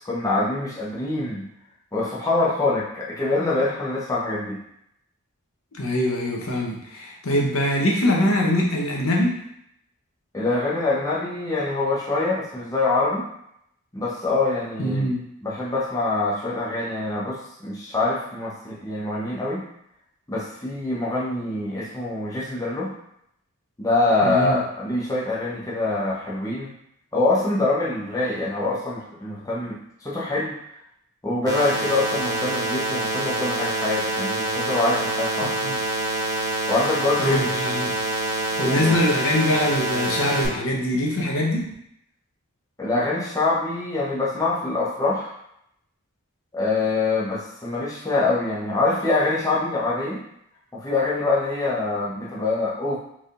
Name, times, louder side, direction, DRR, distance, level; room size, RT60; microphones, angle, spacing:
voice 1, 0.0-1.5 1.9-4.6 10.3-13.2 13.9-15.1 15.4-19.6 20.3-22.9 23.8-26.7 27.1-30.6 31.2-35.6 36.7-37.5 38.6-39.0 42.8-45.3 46.5-50.2 50.7-53.0, left 2 dB, 15° left, -6 dB, 0.8 m, -25 dB
voice 2, 5.7-9.4 14.8-15.2 24.2-24.6 35.6-35.8 37.2-37.9 38.6-41.7, left 1 dB, 60° left, -2 dB, 0.8 m, -23 dB
sound 1, 31.5-40.5, right 2 dB, 15° right, 1.0 m, -26 dB
4.4 x 3.5 x 2.5 m, 0.75 s
head